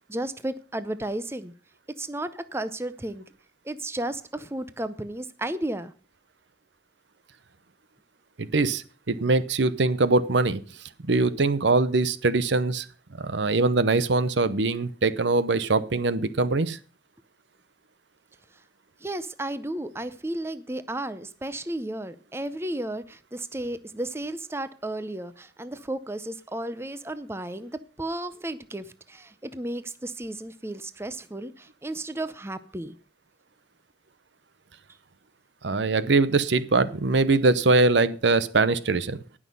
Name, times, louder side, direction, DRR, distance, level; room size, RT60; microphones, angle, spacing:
voice 1, 0.1-1.5 2.0-3.2 3.6-5.9 19.0-27.7 28.0-32.9, right 1 dB, 15° right, 13 dB, 0.6 m, -33 dB
voice 2, 8.4-10.6 11.0-12.9 13.2-16.8 35.6-39.2, right 3 dB, 70° right, 15 dB, 0.8 m, -22 dB
18.5 x 6.2 x 5.4 m, 0.38 s
head